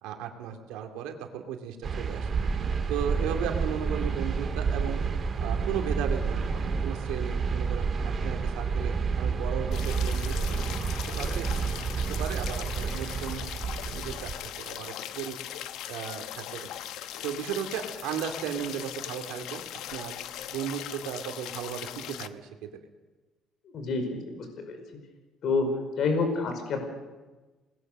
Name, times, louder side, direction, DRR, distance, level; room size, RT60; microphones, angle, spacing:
voice 1, 0.0-2.3 2.9-5.0 5.4-7.9 8.2-10.3 11.2-11.5 12.2-13.4 13.8-15.4 15.9-16.8 17.2-19.6 19.9-20.1 20.5-22.7, right 9 dB, 90° right, 4 dB, 2.5 m, -35 dB
sound 1, 1.8-14.3, right 5 dB, 40° right, 2.5 m, -29 dB
sound 2, 9.7-22.3, left 11 dB, 80° left, 1.0 m, -39 dB
voice 2, 23.7-24.8 25.4-25.7 26.0-26.8, left 4 dB, 60° left, 5 dB, 5.1 m, -28 dB
28.5 x 20.5 x 6.7 m, 1.2 s
cardioid pair, 110°, 0 cm